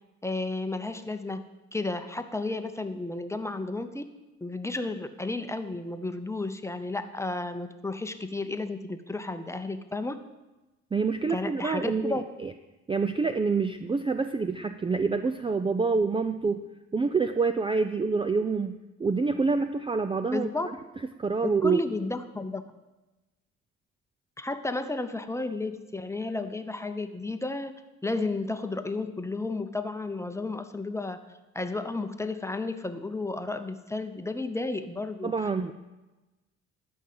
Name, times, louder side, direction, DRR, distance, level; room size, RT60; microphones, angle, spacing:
voice 1, 0.2-1.4 1.7-4.0 4.4-10.2 11.3-12.2 20.3-20.7 21.4-22.6 24.4-27.7 28.0-31.2 31.5-35.3, left 2 dB, 10° left, 9 dB, 0.8 m, -32 dB
voice 2, 10.9-12.5 12.9-16.7 16.9-20.5 21.2-21.8 35.2-35.7, right 4 dB, 20° right, 9 dB, 0.4 m, -27 dB
12.5 x 5.5 x 7.6 m, 1.1 s
cardioid pair, 90°, 30 cm